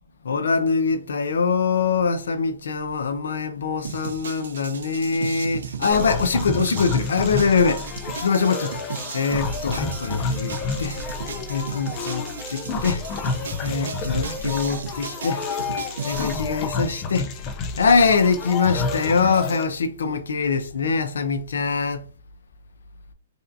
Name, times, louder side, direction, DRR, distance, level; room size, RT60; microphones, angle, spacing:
voice 1, 0.2-8.8 9.1-11.2 11.5-13.3 13.6-15.4 16.0-17.3 17.8-22.0, left 5 dB, 85° left, 0.6 m, -23 dB
sound 1, 3.8-16.4, right 6 dB, 80° right, 0.5 m, -35 dB
sound 2, 5.9-19.6, left 4 dB, 25° left, 0.5 m, -30 dB
3.3 x 2.7 x 2.6 m
hypercardioid pair, 155°, 0 cm